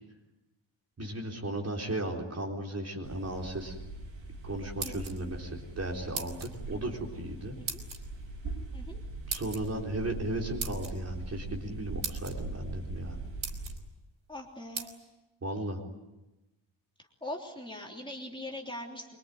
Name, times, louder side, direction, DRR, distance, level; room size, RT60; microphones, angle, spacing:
voice 1, 1.0-3.8 4.4-7.6 9.3-13.2 15.4-15.8, right 1 dB, 30° right, 0 dB, 4.0 m, -35 dB
sound 1, 3.0-13.7, right 2 dB, 70° right, 7.0 m, -41 dB
sound 2, 4.6-5.4 6.1-6.5 7.7-8.0 9.3-9.6 10.6-10.9 11.6-11.7 12.0-12.3 13.0-13.1 13.4-13.8 14.7-14.9, right 6 dB, 90° right, 4.2 m, -37 dB
voice 2, 14.3-14.9 17.2-19.2, left 1 dB, 10° left, -1 dB, 3.3 m, -41 dB
24.5 x 24.0 x 9.4 m, 1.0 s
wide cardioid pair, 165°, 47 cm